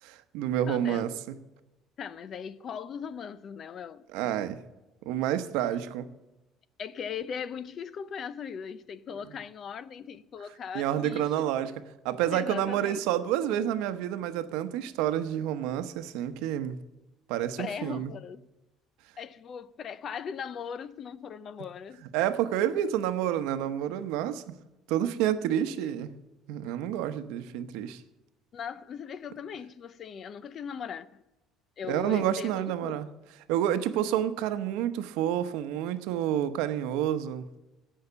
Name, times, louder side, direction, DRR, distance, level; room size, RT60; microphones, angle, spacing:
voice 1, 0.0-1.4 4.1-4.6 5.1-6.1 10.7-11.7 12.0-16.8 17.3-18.1 22.1-24.4 24.9-26.1 26.5-28.0 31.9-33.1 33.5-37.5, right 11 dB, 85° right, 0.8 m, -29 dB
voice 2, 0.7-1.2 2.0-4.4 6.8-11.5 12.3-13.0 17.6-18.4 19.2-22.1 28.5-31.2 31.8-33.0, left 7 dB, 35° left, 0.4 m, -39 dB
16.5 x 5.7 x 6.9 m
cardioid pair, 175°, 0 cm